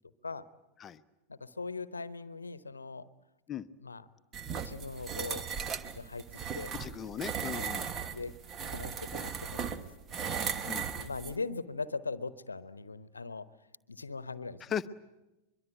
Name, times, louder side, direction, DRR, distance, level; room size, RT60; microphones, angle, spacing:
voice 1, 1.3-3.1 3.8-4.0 4.5-5.4 5.9-6.7 7.6-7.7 8.1-8.4 8.7-9.8 10.9-13.5 13.9-14.6, left 4 dB, 80° left, 17 dB, 1.0 m, -40 dB
sound 1, 4.3-11.4, right 7 dB, 25° right, 1.3 m, -37 dB
voice 2, 6.7-7.9 10.6-10.8 14.6-14.9, left 8 dB, 25° left, 13 dB, 0.9 m, -37 dB
23.5 x 23.0 x 9.2 m, 0.98 s
figure-of-eight pair, 90°, 0 cm